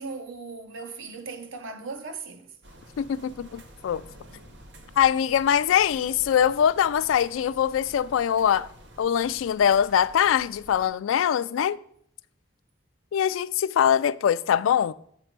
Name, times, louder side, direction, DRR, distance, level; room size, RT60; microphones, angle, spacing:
voice 1, 0.0-2.5, right 4 dB, 85° right, 0.9 m, -38 dB
sound 1, 2.6-10.9, right 1 dB, 60° right, 1.0 m, -49 dB
voice 2, 3.0-4.0 5.0-8.7 9.0-11.8 13.1-14.9, left 9 dB, 90° left, 0.3 m, -23 dB
7.6 x 5.0 x 4.6 m
head